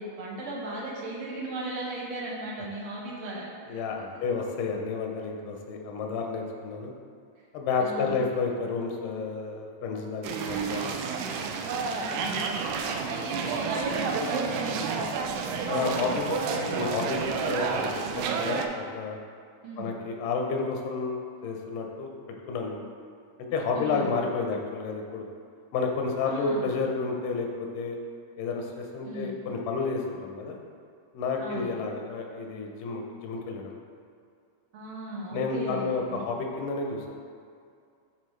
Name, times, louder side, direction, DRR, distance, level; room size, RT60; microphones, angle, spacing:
voice 1, 0.0-3.5 7.8-8.3 10.4-10.8 11.9-12.3 12.9-15.1 19.6-19.9 23.7-24.1 26.3-26.7 29.0-29.4 31.4-31.7 34.7-36.2, right 2 dB, 55° right, -5 dB, 1.6 m, -36 dB
voice 2, 3.7-6.9 7.5-11.0 15.7-19.2 19.8-22.1 22.5-22.8 23.5-25.3 25.7-27.5 27.7-28.0 28.4-30.6 31.1-33.8 35.3-37.1, left 4 dB, 90° left, 1 dB, 2.4 m, -31 dB
sound 1, 10.2-18.7, right 5 dB, 85° right, 2.1 m, -30 dB
10.0 x 4.1 x 3.2 m, 2.3 s
omnidirectional pair, 3.6 m